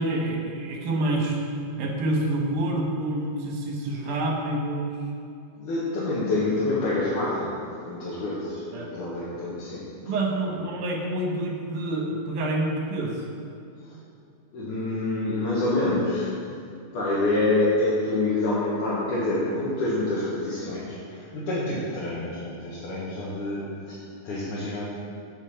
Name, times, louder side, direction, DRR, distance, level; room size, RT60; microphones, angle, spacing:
voice 1, 0.0-1.4 1.8-5.0 8.7-8.9 10.0-13.2, right 1 dB, 75° right, 0 dB, 2.6 m, -27 dB
voice 2, 5.6-10.2 10.5-10.6 13.8-14.0 14.5-16.5 16.9-24.8, left 2 dB, 80° left, -8 dB, 2.9 m, -27 dB
8.3 x 7.1 x 5.6 m, 2.6 s
omnidirectional pair, 3.6 m